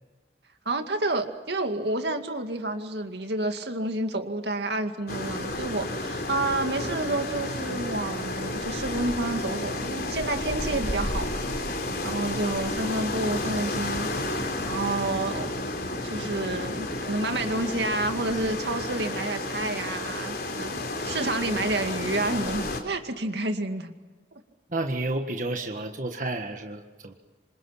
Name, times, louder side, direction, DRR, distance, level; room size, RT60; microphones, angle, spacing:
voice 1, 0.7-11.5 12.0-15.5 15.9-23.9, right 2 dB, 75° right, 6 dB, 2.3 m, -29 dB
sound 1, 5.1-22.8, left 2 dB, 55° left, 4.2 m, -31 dB
voice 2, 24.7-27.1, right 2 dB, 45° right, 4 dB, 1.7 m, -31 dB
27.5 x 26.5 x 5.9 m, 1.3 s
head